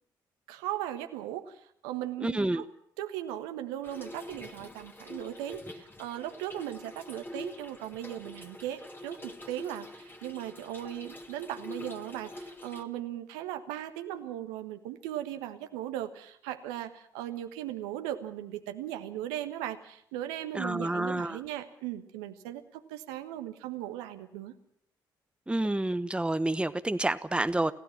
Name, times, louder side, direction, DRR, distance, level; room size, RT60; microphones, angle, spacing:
voice 1, 0.5-2.7 3.0-24.5, right 12 dB, 75° right, 7 dB, 1.4 m, -38 dB
voice 2, 2.2-2.6 20.5-21.4 25.5-27.7, right 1 dB, 10° right, 13 dB, 1.0 m, -29 dB
Trickle dribble / Fill (with liquid), 3.8-12.8, left 1 dB, 20° left, 2.5 m, -45 dB
29.0 x 16.0 x 6.0 m, 0.70 s
figure-of-eight pair, 45°, 11 cm